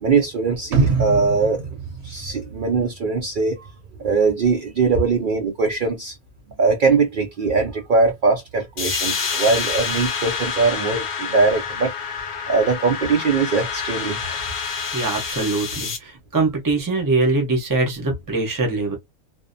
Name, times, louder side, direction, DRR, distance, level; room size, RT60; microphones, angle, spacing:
voice 1, 0.0-1.7 2.0-3.7 4.0-6.1 6.6-11.9 12.5-14.4, right 4 dB, 80° right, 0.4 m, -21 dB
sound 1, 0.7-2.9 3.2-3.3, right 4 dB, 60° right, 0.8 m, -24 dB
sound 2, 8.8-16.0, left 6 dB, 55° left, 0.7 m, -28 dB
voice 2, 14.9-19.0, right 3 dB, 25° right, 0.5 m, -22 dB
2.6 x 2.0 x 2.5 m
omnidirectional pair, 1.5 m